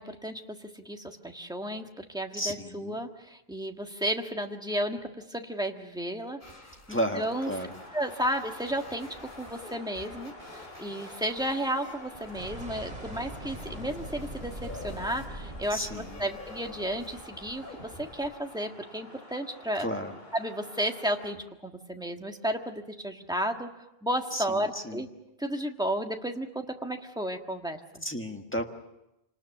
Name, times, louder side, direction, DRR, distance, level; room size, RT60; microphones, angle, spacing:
voice 1, 0.0-6.4 6.9-7.5 7.9-19.9 20.3-25.1 25.4-28.0, right 1 dB, 5° right, 3 dB, 1.5 m, -33 dB
voice 2, 2.3-3.0 6.9-7.8 15.7-16.2 19.8-20.2 24.3-25.0 28.0-28.6, equal, 10° left, 4 dB, 1.5 m, -33 dB
sound 1, 6.4-18.3, left 2 dB, 55° left, 3.6 m, -49 dB
sound 2, 6.9-21.3, left 1 dB, 80° left, 4.7 m, -49 dB
sound 3, 12.3-17.5, right 1 dB, 40° right, 3.1 m, -42 dB
26.5 x 19.5 x 7.1 m, 0.90 s
omnidirectional pair, 1.0 m